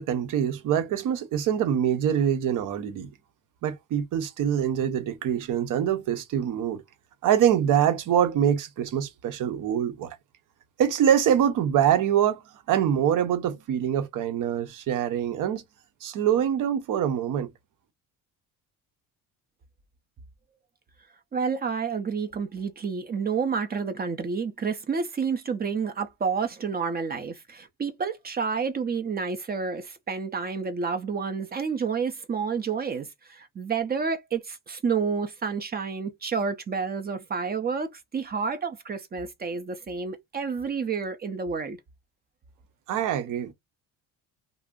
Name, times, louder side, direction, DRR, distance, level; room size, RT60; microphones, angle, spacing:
voice 1, 0.0-3.1 3.6-6.8 7.2-10.2 10.8-12.4 12.7-15.6 16.0-17.5 42.9-43.5, right 9 dB, 60° right, 0.7 m, -24 dB
voice 2, 21.3-41.8, right 5 dB, 25° right, 0.5 m, -29 dB
2.5 x 2.0 x 3.5 m
cardioid pair, 115°, 36 cm